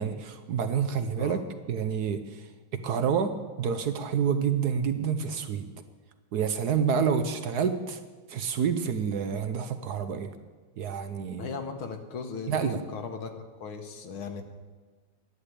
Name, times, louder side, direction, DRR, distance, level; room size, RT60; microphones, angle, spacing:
voice 1, 0.0-1.4 1.7-2.4 2.7-5.7 6.3-8.0 8.3-10.3 10.8-11.5 12.5-12.8, right 7 dB, 60° right, 10 dB, 1.1 m, -28 dB
voice 2, 11.4-13.3 13.6-14.4, left 5 dB, 80° left, 6 dB, 2.1 m, -37 dB
11.0 x 8.6 x 9.8 m, 1.4 s
omnidirectional pair, 2.3 m